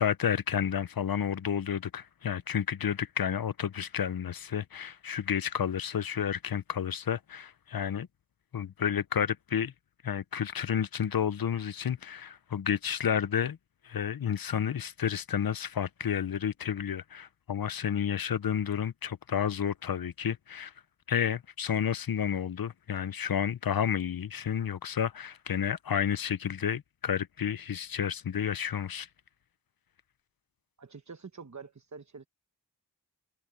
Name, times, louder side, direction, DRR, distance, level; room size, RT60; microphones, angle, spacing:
voice 1, 0.0-8.1 8.5-9.7 10.0-13.6 13.8-20.7 21.1-29.1, left 8 dB, 80° left, 0.6 m, -31 dB
voice 2, 30.8-32.3, right 5 dB, 55° right, 1.1 m, -46 dB
wide cardioid pair, 50°, 35 cm